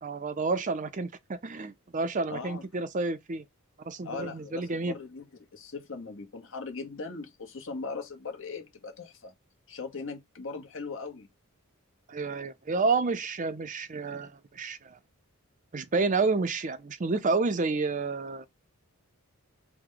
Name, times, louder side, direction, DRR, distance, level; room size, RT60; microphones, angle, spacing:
voice 1, 0.0-3.4 3.8-5.0 12.1-15.0 15.7-18.5, right 3 dB, 35° right, 0.5 m, -30 dB
voice 2, 2.3-2.7 4.0-5.3 5.5-9.3 9.7-11.3, left 4 dB, 60° left, 1.0 m, -39 dB
4.7 x 2.2 x 3.8 m
head